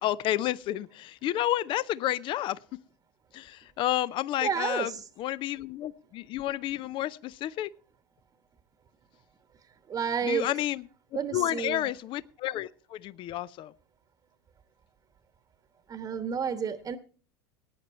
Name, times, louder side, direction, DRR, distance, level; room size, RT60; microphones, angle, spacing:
voice 1, 0.0-2.6 3.3-4.9 5.2-7.7 10.2-10.9 11.3-13.7, left 13 dB, 40° left, 0.5 m, -30 dB
voice 2, 4.4-4.9 9.9-10.5 11.1-11.9 15.9-17.0, right 7 dB, 30° right, 1.1 m, -30 dB
18.5 x 9.5 x 4.3 m
hypercardioid pair, 85°, 13 cm